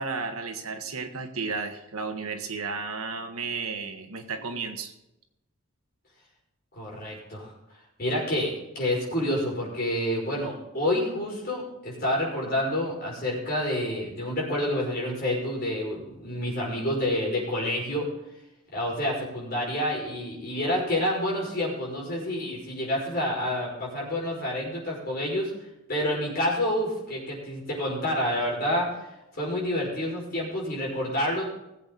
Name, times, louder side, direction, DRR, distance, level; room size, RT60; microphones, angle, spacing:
voice 1, 0.0-4.9, right 4 dB, 90° right, 6 dB, 1.6 m, -33 dB
voice 2, 6.8-7.5 8.0-18.1 18.7-25.5 25.9-29.0 29.4-31.4, left 1 dB, 45° left, -3 dB, 5.5 m, -28 dB
20.0 x 8.0 x 4.1 m, 0.89 s
head